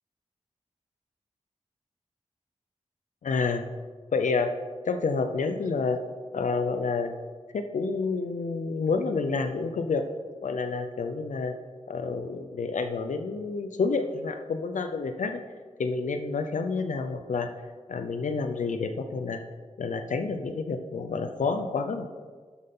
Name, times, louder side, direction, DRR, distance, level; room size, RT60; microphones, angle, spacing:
voice 1, 3.2-3.6 4.1-4.5 4.9-6.0 6.3-7.1 7.5-10.0 10.4-11.6 11.9-15.4 15.8-17.5 17.9-19.4 19.8-22.1, left 4 dB, 90° left, 7 dB, 0.6 m, -29 dB
12.0 x 5.6 x 3.7 m, 1.5 s
wide cardioid pair, 100°, 13 cm